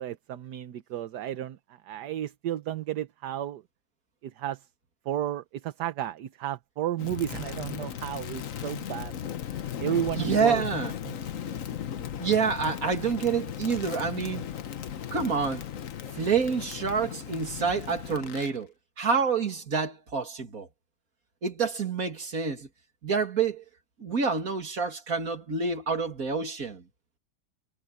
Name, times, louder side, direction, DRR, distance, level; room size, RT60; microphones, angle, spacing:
voice 1, 0.0-3.6 4.2-4.7 5.0-9.1 9.8-10.7 11.0-11.2 11.4-11.5, right 12 dB, 75° right, 1.4 m, -33 dB
Crackle, 7.0-18.6, left 9 dB, 55° left, 1.2 m, -37 dB
voice 2, 10.2-10.9 12.2-14.5 15.1-15.6 16.1-18.7 19.0-20.7 21.4-22.7 23.0-23.6 24.0-26.8, right 5 dB, 55° right, 2.9 m, -27 dB
omnidirectional pair, 1.8 m